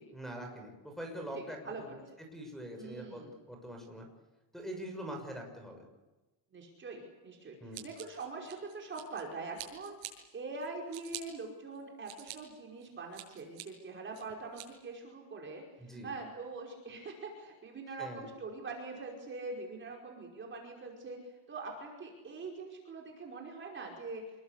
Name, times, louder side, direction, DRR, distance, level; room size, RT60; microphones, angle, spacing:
voice 1, 0.1-1.9 2.2-4.1 4.5-5.9 7.6-7.9 15.8-16.1 18.0-18.3, equal, ahead, 4 dB, 6.1 m, -43 dB
voice 2, 1.3-2.0 2.8-3.3 6.5-24.2, right 3 dB, 25° right, 1 dB, 5.3 m, -43 dB
Scissors, 7.7-9.2 9.6-10.1 10.6-11.2 11.8-12.4 12.8-13.6 14.1-14.7, right 18 dB, 65° right, 7.6 m, -46 dB
28.0 x 23.0 x 8.4 m, 1.1 s
cardioid pair, 170°, 50 cm